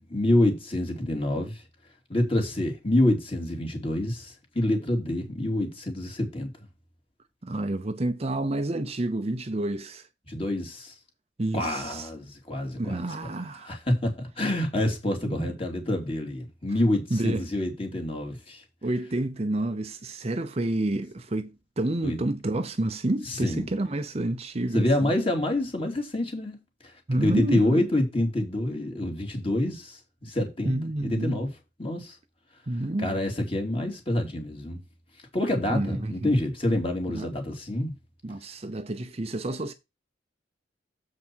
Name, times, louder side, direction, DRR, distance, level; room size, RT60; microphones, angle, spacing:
voice 1, 0.1-1.6 2.1-6.5 10.3-10.9 11.5-13.0 13.6-18.6 22.0-22.2 23.3-23.7 24.7-26.6 27.2-30.7 31.0-31.5 31.8-32.1 33.0-34.8 35.3-37.9, left 1 dB, 30° left, 3.0 m, -27 dB
voice 2, 7.4-10.1 11.4-12.1 12.8-13.7 15.2-15.5 17.1-17.5 18.8-25.1 27.1-27.9 30.6-31.4 32.7-33.2 35.7-36.4 37.1-37.3 38.2-39.7, right 1 dB, 35° right, 0.7 m, -29 dB
7.6 x 5.8 x 4.6 m
head